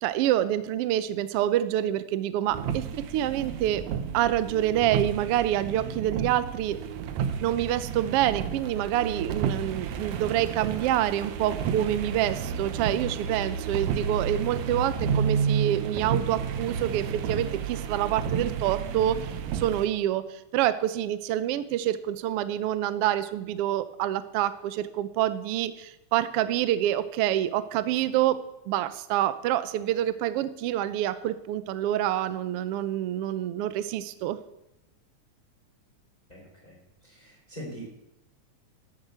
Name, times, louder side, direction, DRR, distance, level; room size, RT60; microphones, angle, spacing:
voice 1, 0.0-3.8 4.1-6.8 7.4-34.4, right 12 dB, 85° right, 13 dB, 1.3 m, -27 dB
sound 1, 2.5-19.9, right 6 dB, 70° right, 2.1 m, -31 dB
voice 2, 36.3-37.9, equal, 10° left, -5 dB, 3.7 m, -43 dB
13.0 x 7.8 x 8.0 m, 0.88 s
omnidirectional pair, 3.6 m